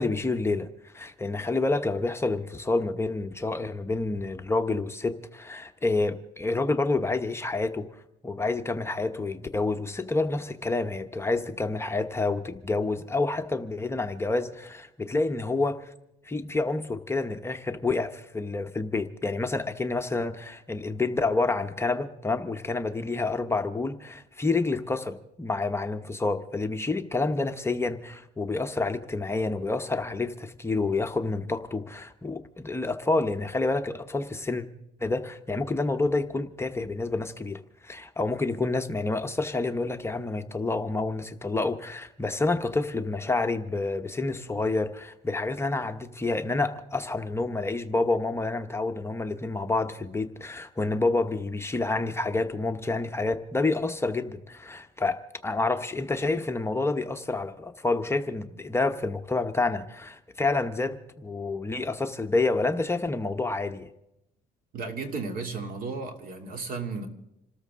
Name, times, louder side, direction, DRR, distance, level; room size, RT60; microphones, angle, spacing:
voice 1, 0.0-7.9 8.2-15.9 16.2-34.7 35.0-63.9, left 3 dB, 15° left, 0.9 m, -28 dB
voice 2, 64.7-67.1, right 4 dB, 60° right, 2.7 m, -34 dB
27.0 x 13.5 x 3.7 m
cardioid pair, 110°, 17 cm